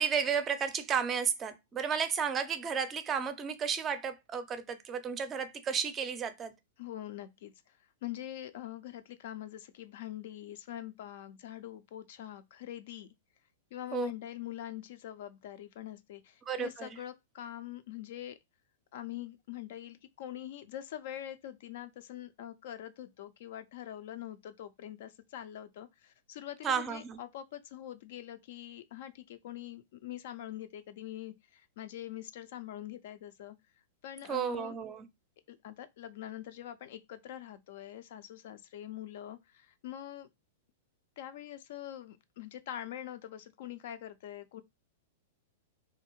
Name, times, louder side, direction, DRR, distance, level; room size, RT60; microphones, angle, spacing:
voice 1, 0.0-6.5 13.9-14.1 16.5-17.0 26.6-27.2 34.3-35.0, right 7 dB, 25° right, 0.4 m, -33 dB
voice 2, 6.8-7.5 8.0-13.1 13.7-18.4 18.9-33.6 34.0-34.7 35.5-40.3 41.2-44.6, left 12 dB, 60° left, 0.3 m, -44 dB
2.6 x 2.4 x 2.9 m
hypercardioid pair, 110°, 0 cm